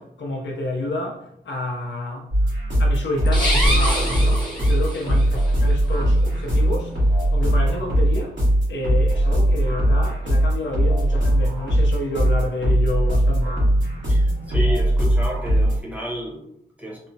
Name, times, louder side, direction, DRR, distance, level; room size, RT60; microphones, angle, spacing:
voice 1, 0.0-2.3 2.8-7.0 7.3-8.4 8.7-13.7, left 1 dB, 80° left, 0.6 m, -29 dB
sound 1, 2.3-15.8, right 1 dB, 85° right, 1.3 m, -20 dB
sound 2, 3.3-5.3, equal, 25° left, 0.8 m, -25 dB
voice 2, 14.1-16.5 16.8-17.0, equal, 10° right, 0.7 m, -31 dB
3.0 x 2.0 x 2.6 m
wide cardioid pair, 115°, 19 cm